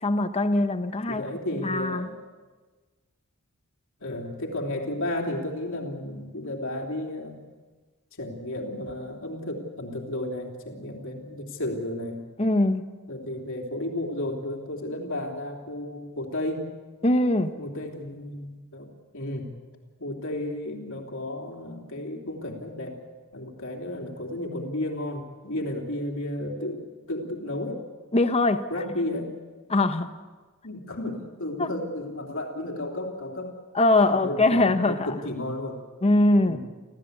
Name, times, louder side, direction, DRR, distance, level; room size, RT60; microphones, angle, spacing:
voice 1, 0.0-1.2 1.6-2.1 12.4-12.8 17.0-17.5 28.1-28.7 29.7-30.1 31.6-31.7 33.7-35.2 36.0-36.6, left 2 dB, 30° left, 9 dB, 1.0 m, -22 dB
voice 2, 1.1-2.1 4.0-7.4 8.2-12.2 13.1-16.7 17.6-19.5 20.0-23.0 23.3-27.8 28.7-29.3 30.6-33.6 34.0-35.8 36.4-36.6, left 1 dB, 60° left, 1 dB, 3.2 m, -33 dB
27.5 x 15.5 x 8.2 m, 1.3 s
head